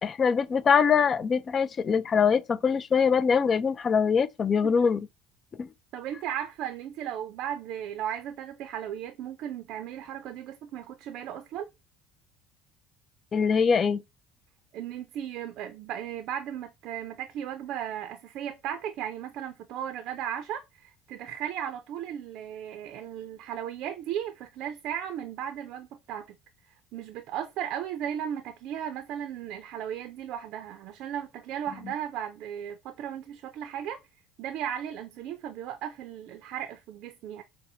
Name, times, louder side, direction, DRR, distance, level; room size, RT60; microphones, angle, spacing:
voice 1, 0.0-5.1 5.6-5.7 13.3-14.0, left 6 dB, 35° left, 0.3 m, -23 dB
voice 2, 5.9-11.7 14.7-26.4 26.7-34.0 34.4-37.4, right 10 dB, 65° right, 0.4 m, -36 dB
5.2 x 2.0 x 2.5 m
supercardioid pair, 105°, 0 cm